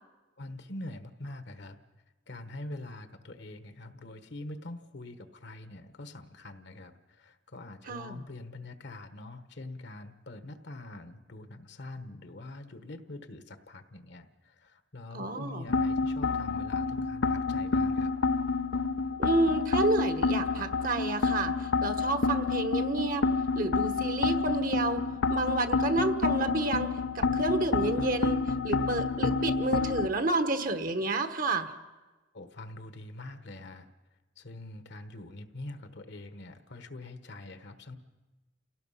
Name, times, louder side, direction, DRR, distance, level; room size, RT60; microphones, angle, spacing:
voice 1, 0.4-1.8 2.3-18.1 32.3-33.9 34.4-38.0, left 2 dB, 65° left, 10 dB, 1.3 m, -44 dB
voice 2, 7.9-8.2 15.1-15.6 19.2-23.3 23.5-25.0 25.3-31.7, right 2 dB, 45° right, 9 dB, 1.3 m, -30 dB
sound 1, 15.7-30.1, left 4 dB, 80° left, 0.7 m, -29 dB
29.0 x 17.5 x 5.7 m, 1.2 s
head